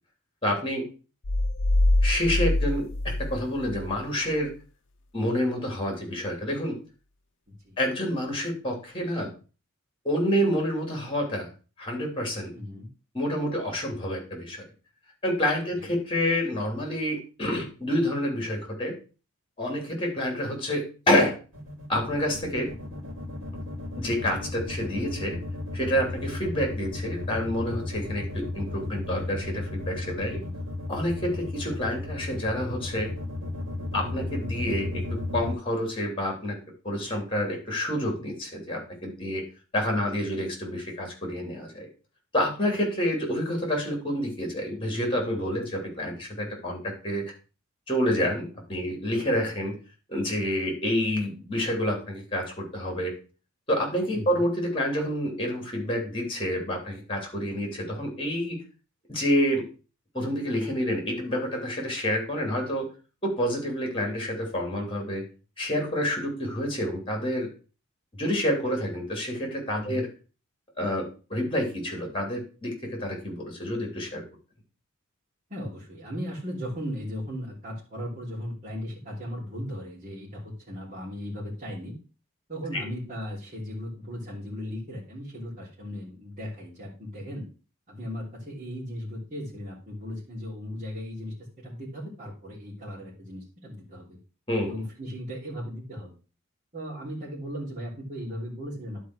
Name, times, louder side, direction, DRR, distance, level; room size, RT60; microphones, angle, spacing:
voice 1, 0.4-0.9 2.0-4.5 5.1-6.8 7.8-9.3 10.1-11.5 11.8-12.5 13.1-14.6 15.2-19.0 19.6-21.4 21.9-22.7 24.0-25.4 25.7-30.4 30.9-33.1 33.9-36.6 36.8-39.4 39.7-41.9 42.3-47.2 47.9-49.8 50.1-53.1 53.7-58.6 59.1-59.7 60.1-62.9 63.2-65.2 65.6-67.5 68.1-70.1 70.8-74.2 82.7-82.8 94.5-94.7, equal, 25° left, 2 dB, 3.3 m, -28 dB
sound 1, 1.2-4.0, left 1 dB, 55° left, 0.7 m, -24 dB
voice 2, 12.5-12.9 15.7-15.9 30.3-30.6 39.9-40.1 48.8-49.0 54.1-54.4 69.8-70.0 75.5-81.9 82.5-87.4 87.9-94.2 94.7-96.1 96.7-99.0, equal, 35° right, -6 dB, 3.3 m, -37 dB
sound 2, 21.5-35.5, left 1 dB, 60° right, 3.3 m, -35 dB
10.5 x 4.7 x 6.3 m, 0.35 s
head